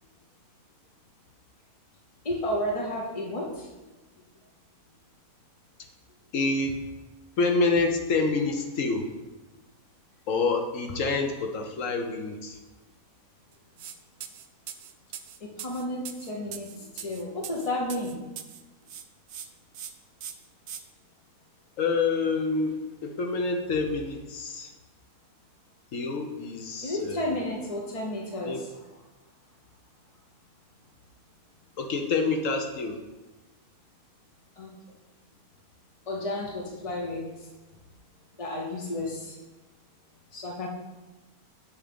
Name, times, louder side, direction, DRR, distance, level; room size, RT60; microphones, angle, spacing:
voice 1, 2.2-3.7 15.4-18.2 26.8-28.7 34.6-34.7 36.1-37.3 38.4-39.3 40.3-40.7, left 1 dB, 35° left, -2 dB, 0.6 m, -32 dB
voice 2, 6.3-6.7 7.4-9.1 10.3-12.6 21.8-24.7 25.9-27.4 28.5-28.6 31.8-33.0, left 3 dB, 65° left, 4 dB, 1.1 m, -27 dB
sound 1, 13.8-14.0 14.2-18.6 18.9-19.5 19.7-19.9 20.2-20.8, right 9 dB, 70° right, 0.6 m, -40 dB
8.0 x 3.7 x 5.1 m, 1.1 s
omnidirectional pair, 1.6 m